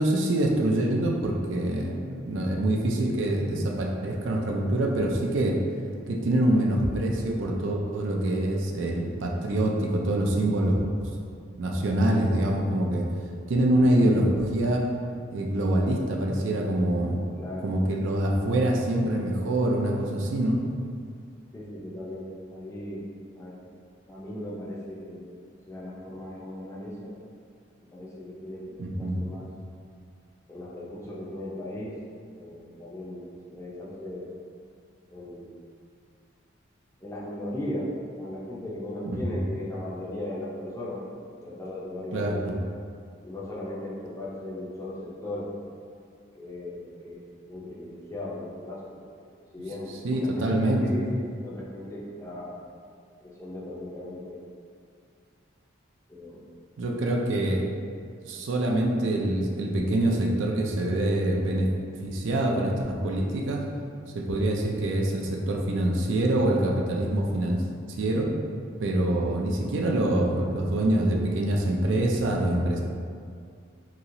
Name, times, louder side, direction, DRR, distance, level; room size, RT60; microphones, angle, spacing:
voice 1, 0.0-5.6 6.1-11.1 11.6-13.0 13.5-14.8 15.3-17.2 17.6-20.6 28.8-29.2 39.0-39.4 42.1-42.6 50.0-50.8 56.8-57.6 58.3-61.7 62.0-63.6 64.1-67.6 68.0-68.3 68.8-72.8, right 1 dB, 85° right, 0 dB, 0.4 m, -25 dB
voice 2, 17.4-17.7 21.5-23.6 24.0-25.3 25.7-27.2 27.9-29.5 30.5-32.0 32.4-34.3 35.1-35.6 37.0-42.5 43.2-45.6 46.3-49.3 49.5-52.6 53.2-54.5 56.1-56.4, left 1 dB, 15° left, -6 dB, 0.5 m, -37 dB
3.0 x 2.8 x 2.6 m, 2.3 s
head